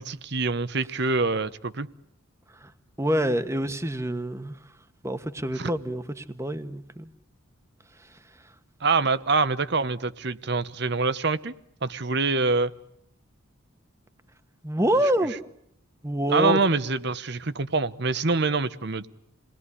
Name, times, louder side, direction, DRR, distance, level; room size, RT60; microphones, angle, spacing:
voice 1, 0.0-1.9 5.6-5.7 8.8-11.5 11.8-12.7 16.3-19.1, right 3 dB, 55° right, 1.0 m, -25 dB
voice 2, 3.0-4.6 5.0-7.1 14.6-15.3 16.0-16.6, equal, 15° right, 1.3 m, -26 dB
28.5 x 20.0 x 9.9 m
head